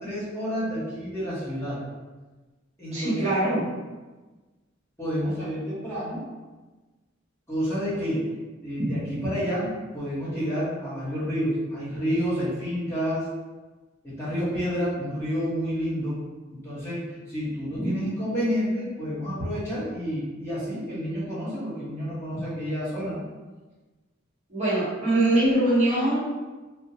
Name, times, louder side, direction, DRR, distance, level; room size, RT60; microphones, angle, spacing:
voice 1, 0.0-1.8 2.8-3.3 5.0-6.2 7.5-8.3 8.6-13.3 14.0-16.2 16.5-23.2, equal, 15° left, -12 dB, 1.3 m, -29 dB
voice 2, 2.9-3.6 8.8-8.9 17.7-17.9 24.5-26.2, right 1 dB, 35° right, -10 dB, 1.1 m, -23 dB
3.5 x 2.5 x 2.8 m, 1.2 s
head